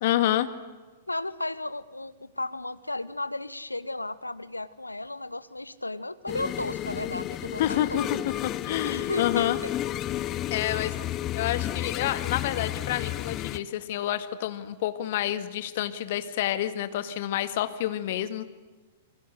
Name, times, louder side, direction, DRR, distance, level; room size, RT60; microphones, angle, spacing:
voice 1, 0.0-0.5 7.6-9.6 10.5-11.0 11.3-18.4, left 13 dB, 50° left, 11 dB, 2.1 m, -28 dB
voice 2, 1.1-8.1 8.8-9.7, left 2 dB, 85° left, 16 dB, 1.1 m, -34 dB
sound 1, 6.3-13.6, left 13 dB, 30° left, 1.0 m, -32 dB
28.0 x 24.0 x 8.2 m, 1.3 s
figure-of-eight pair, 105°, 0 cm